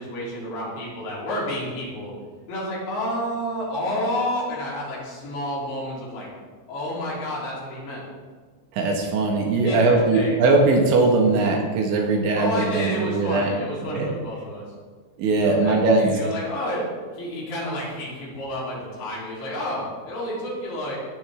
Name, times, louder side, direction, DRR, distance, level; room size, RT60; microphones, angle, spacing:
voice 1, 0.0-2.1 2.5-6.3 6.7-8.0 9.6-10.4 12.4-14.7 15.4-16.8 17.1-21.0, left 1 dB, 70° left, -6 dB, 5.7 m, -30 dB
voice 2, 8.7-13.5 13.8-14.1 15.2-16.2, right 3 dB, 75° right, 1 dB, 3.9 m, -20 dB
16.0 x 10.5 x 3.7 m, 1.5 s
omnidirectional pair, 5.5 m